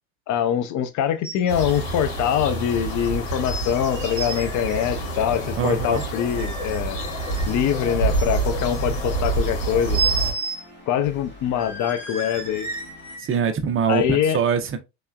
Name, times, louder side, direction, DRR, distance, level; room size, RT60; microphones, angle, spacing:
voice 1, 0.3-7.1 7.5-10.0 10.9-12.7 13.9-14.4, left 9 dB, 45° left, 0.6 m, -24 dB
sound 1, 1.2-1.5 1.8-1.9 2.6-2.7 3.4-3.7 4.0-4.4 5.5-6.0 6.4-7.6 8.1-8.8 9.9-10.6 11.0-11.1 11.5-13.3 13.9-14.0, right 4 dB, 10° right, 1.3 m, -31 dB
sound 2, 1.5-10.3, right 2 dB, 65° left, 1.8 m, -27 dB
sound 3, 4.3-13.2, left 1 dB, 25° left, 1.3 m, -47 dB
voice 2, 5.6-6.0 13.2-14.8, right 6 dB, 30° right, 0.7 m, -23 dB
3.3 x 2.9 x 2.3 m
supercardioid pair, 95°, 40 cm